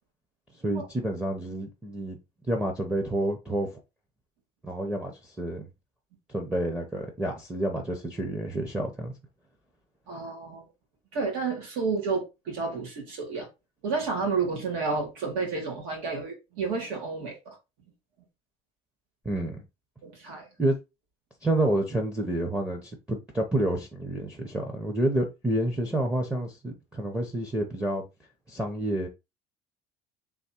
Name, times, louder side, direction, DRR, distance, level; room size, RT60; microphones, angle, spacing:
voice 1, 0.6-2.2 2.5-3.8 4.6-5.7 6.3-9.1 19.2-19.6 20.6-20.8 21.4-28.0 28.5-29.1, right 1 dB, 10° right, 0.5 m, -29 dB
voice 2, 10.1-10.6 11.1-13.5 13.8-17.6 20.0-20.5, right 4 dB, 85° right, 2.0 m, -31 dB
3.5 x 3.1 x 4.2 m
cardioid pair, 175°, 15 cm